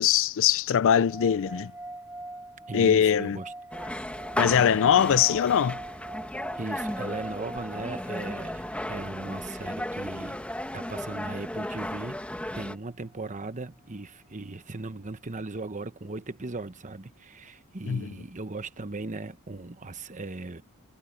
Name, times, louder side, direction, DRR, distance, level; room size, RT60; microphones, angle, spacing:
voice 1, 0.0-1.7 2.7-3.4 4.4-5.8 17.9-18.1, left 8 dB, 60° left, 0.4 m, -22 dB
sound 1, 0.9-12.2, right 2 dB, 10° right, 4.3 m, -43 dB
voice 2, 2.7-3.5 4.5-4.9 6.5-10.5 10.7-12.2 12.5-20.6, right 3 dB, 35° right, 1.1 m, -38 dB
sound 2, 3.7-12.8, left 1 dB, 5° left, 1.3 m, -35 dB
head